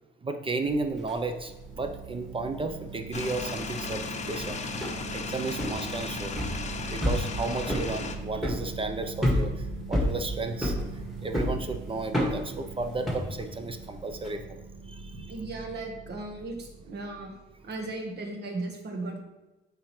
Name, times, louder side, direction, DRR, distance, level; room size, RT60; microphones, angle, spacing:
voice 1, 0.2-6.3 6.9-15.3, right 3 dB, 25° right, 7 dB, 0.6 m, -34 dB
sound 1, 0.7-1.1 1.4-1.8 2.3-14.3, equal, ahead, 1.9 m, -30 dB
sound 2, 1.5-17.7, right 5 dB, 80° right, 0.7 m, -42 dB
sound 3, 3.1-8.2, left 4 dB, 35° left, 0.7 m, -36 dB
voice 2, 15.1-17.3 17.6-19.2, right 2 dB, 55° right, 3 dB, 1.4 m, -36 dB
7.9 x 4.8 x 3.2 m, 1.1 s
cardioid pair, 90°, 20 cm